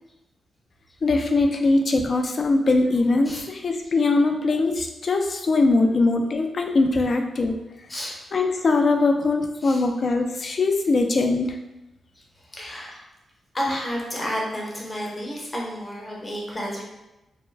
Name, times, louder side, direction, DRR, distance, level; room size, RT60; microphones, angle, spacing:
voice 1, 1.0-7.6 8.3-11.6, left 3 dB, 45° left, 4 dB, 0.3 m, -21 dB
voice 2, 12.4-13.0 13.5-16.8, equal, 20° left, -3 dB, 0.7 m, -31 dB
2.4 x 2.1 x 3.2 m, 0.97 s
cardioid pair, 110°, 0 cm